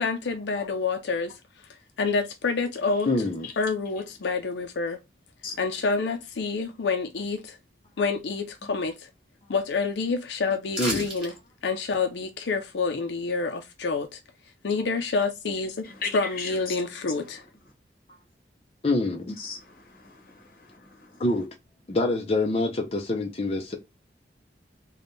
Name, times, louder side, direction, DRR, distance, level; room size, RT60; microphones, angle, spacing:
voice 1, 0.0-1.7 2.0-3.1 3.6-5.0 5.6-7.6 8.0-9.1 9.5-11.3 11.6-14.2 14.6-17.4, left 4 dB, 80° left, 0.5 m, -28 dB
voice 2, 3.1-3.5 10.8-11.1 18.8-19.3 21.2-21.4 21.9-23.8, left 2 dB, 35° left, 0.5 m, -25 dB
sound 1, 10.7-11.3 11.7-11.8, equal, 5° right, 1.5 m, -31 dB
voice 3, 15.8-17.5 19.3-21.2, left 5 dB, 55° left, 1.1 m, -39 dB
3.5 x 2.2 x 3.8 m
head